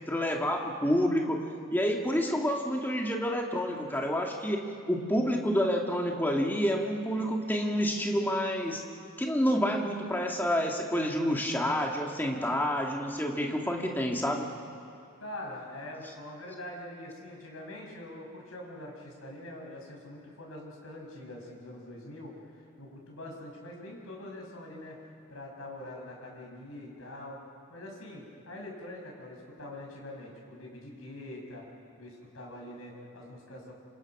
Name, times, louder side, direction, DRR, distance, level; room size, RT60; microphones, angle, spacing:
voice 1, 0.1-1.4 1.7-8.8 9.2-14.5, equal, 10° left, 0 dB, 2.1 m, -28 dB
voice 2, 15.2-27.4 27.7-31.7 32.0-33.7, left 1 dB, 80° left, -1 dB, 6.3 m, -44 dB
27.0 x 27.0 x 6.1 m, 2.5 s
head